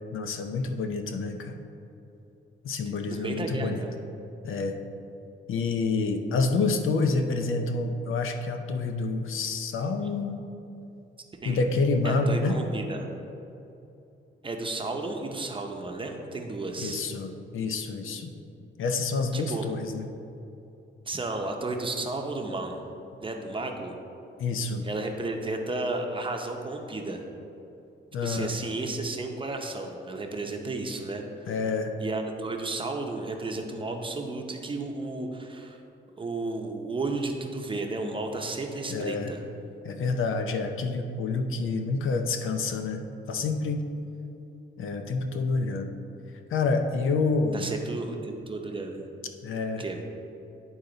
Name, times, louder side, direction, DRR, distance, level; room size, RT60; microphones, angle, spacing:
voice 1, 0.1-1.6 2.6-3.8 4.4-4.8 5.5-10.4 11.4-12.6 16.8-18.3 18.8-20.1 24.4-24.9 28.1-28.5 31.5-31.9 38.9-39.3 39.8-43.8 44.8-45.9 46.5-47.7 49.4-49.8, left 3 dB, 80° left, 6 dB, 0.6 m, -28 dB
voice 2, 3.1-4.0 11.4-11.6 12.0-13.1 14.4-17.0 19.3-19.7 21.1-22.8 23.2-23.9 24.8-27.2 28.2-31.2 32.0-35.8 36.2-39.4 47.5-49.1 49.8-50.0, right 2 dB, 25° right, 2 dB, 0.7 m, -33 dB
10.5 x 4.0 x 3.9 m, 2.7 s
cardioid pair, 120°, 21 cm